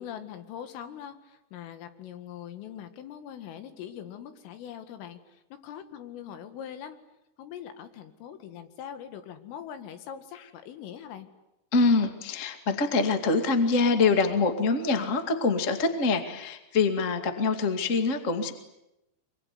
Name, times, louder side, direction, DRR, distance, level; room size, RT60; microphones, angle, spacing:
voice 1, 0.0-7.0 7.4-11.3, left 9 dB, 90° left, 9 dB, 4.6 m, -42 dB
voice 2, 11.7-18.5, left 4 dB, 75° left, 7 dB, 0.7 m, -25 dB
25.5 x 23.5 x 9.7 m, 0.91 s
omnidirectional pair, 5.7 m